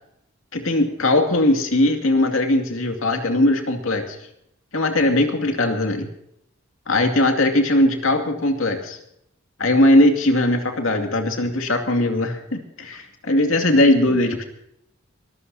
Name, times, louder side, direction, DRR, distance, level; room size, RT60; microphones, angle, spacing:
voice 1, 0.5-4.2 4.7-6.1 6.9-9.0 9.6-14.4, left 1 dB, 80° left, 3 dB, 2.5 m, -19 dB
23.5 x 15.0 x 2.8 m, 0.76 s
head